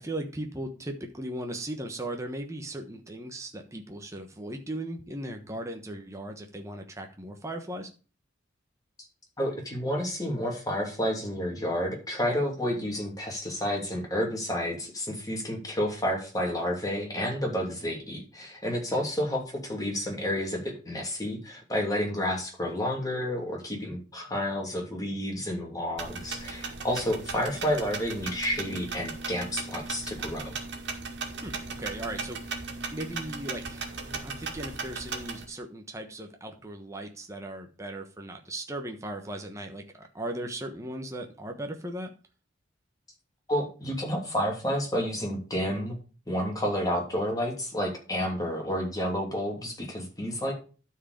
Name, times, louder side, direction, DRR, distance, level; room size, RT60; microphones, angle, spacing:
voice 1, 0.0-7.9 18.9-19.0 31.3-32.6 32.9-42.1, right 1 dB, 15° right, 3 dB, 1.2 m, -38 dB
voice 2, 9.4-30.5 43.5-46.0 46.3-50.5, equal, 20° left, 0 dB, 2.9 m, -30 dB
sound 1, 26.0-35.4, right 4 dB, 65° right, 2.2 m, -37 dB
12.0 x 4.8 x 5.1 m, 0.35 s
head